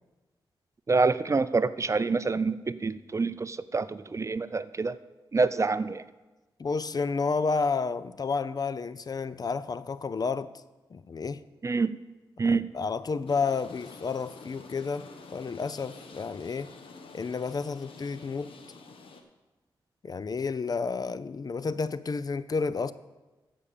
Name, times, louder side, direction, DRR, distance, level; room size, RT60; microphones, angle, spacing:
voice 1, 0.9-5.0 5.3-6.0 11.6-11.9 12.4-12.6, right 4 dB, 35° right, 0.5 m, -26 dB
voice 2, 6.6-10.5 10.9-11.4 12.4-16.7 17.1-18.6 20.0-22.9, left 4 dB, 45° left, 0.5 m, -31 dB
sound 1, 13.3-19.2, left 4 dB, 80° left, 1.1 m, -48 dB
14.5 x 5.3 x 6.8 m
cardioid pair, 65°, 9 cm